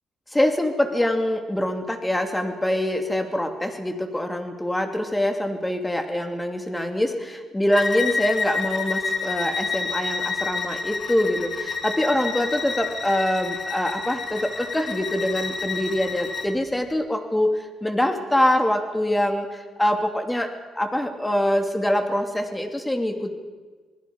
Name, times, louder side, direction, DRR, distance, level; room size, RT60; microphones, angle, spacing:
voice 1, 0.3-23.3, left 1 dB, 10° left, 5 dB, 2.8 m, -24 dB
Bowed string instrument, 7.7-16.5, left 4 dB, 45° left, 2.5 m, -29 dB
27.0 x 20.0 x 5.3 m, 1.3 s
cardioid pair, 90°, 0 cm